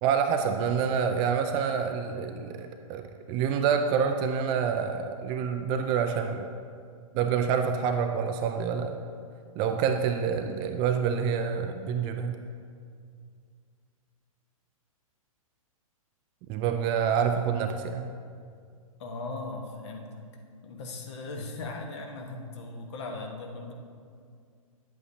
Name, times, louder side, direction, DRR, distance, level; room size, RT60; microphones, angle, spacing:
voice 1, 0.0-3.0 3.3-6.5 7.1-9.0 9.6-12.4 16.5-18.1, right 7 dB, 25° right, 6 dB, 0.4 m, -27 dB
voice 2, 19.0-20.2 20.6-23.7, left 3 dB, 50° left, 2 dB, 1.2 m, -38 dB
9.8 x 8.1 x 2.8 m, 2.2 s
hypercardioid pair, 120°, 18 cm